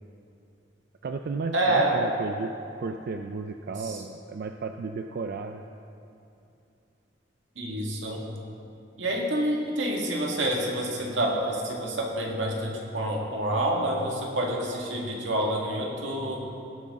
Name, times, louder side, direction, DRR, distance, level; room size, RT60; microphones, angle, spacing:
voice 1, 1.0-2.5 2.8-5.6, right 4 dB, 55° right, 6 dB, 0.4 m, -33 dB
voice 2, 1.5-2.1 3.8-4.0 7.6-8.2 9.0-16.5, right 1 dB, 90° right, -1 dB, 1.9 m, -28 dB
18.0 x 8.0 x 3.7 m, 2.7 s
head